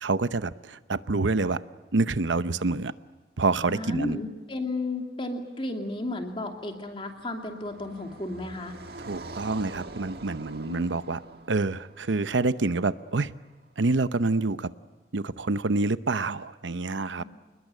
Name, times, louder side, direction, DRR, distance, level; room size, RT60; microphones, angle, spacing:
voice 1, 0.0-1.6 1.9-2.9 3.4-4.2 9.0-11.2 11.5-13.3 13.8-14.7 15.1-17.2, right 3 dB, 90° right, 14 dB, 0.8 m, -27 dB
voice 2, 3.7-8.8 10.7-10.9 17.2-17.3, left 2 dB, 30° left, 3 dB, 2.8 m, -33 dB
Car passing by, 6.2-13.4, right 2 dB, 55° right, 2.0 m, -45 dB
28.0 x 20.5 x 9.0 m, 1.2 s
head